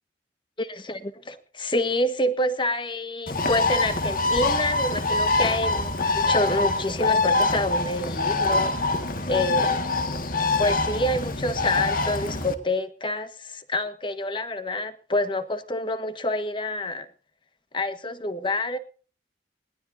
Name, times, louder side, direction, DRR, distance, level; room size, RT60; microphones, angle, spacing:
voice 1, 0.6-8.9 9.2-9.9 10.6-17.1 17.7-18.8, left 1 dB, 30° left, 1.5 m, -27 dB
Bird, 3.3-12.5, left 3 dB, 50° left, 1.9 m, -25 dB
21.0 x 19.5 x 2.7 m
head